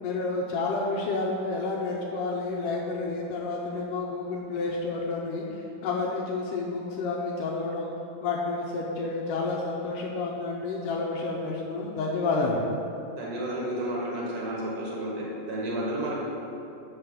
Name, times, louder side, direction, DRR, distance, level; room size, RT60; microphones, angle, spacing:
voice 1, 0.0-7.9 8.2-12.7, left 3 dB, 75° left, -2 dB, 2.0 m, -30 dB
voice 2, 13.2-16.2, right 1 dB, 65° right, -5 dB, 2.8 m, -31 dB
6.1 x 5.8 x 6.6 m, 2.8 s
omnidirectional pair, 4.2 m